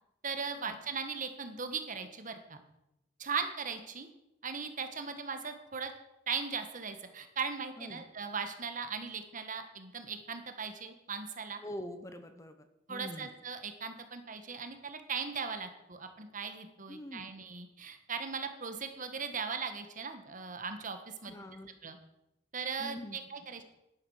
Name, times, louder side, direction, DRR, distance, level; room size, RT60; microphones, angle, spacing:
voice 1, 0.2-2.6 3.2-4.1 4.4-5.9 6.3-11.6 12.9-21.3 21.8-22.0 22.5-23.6, right 5 dB, 45° right, 8 dB, 1.5 m, -38 dB
voice 2, 11.6-13.3 16.9-17.2 21.2-21.8 22.8-23.2, left 1 dB, 15° left, 9 dB, 0.9 m, -45 dB
11.0 x 9.7 x 6.5 m, 0.87 s
head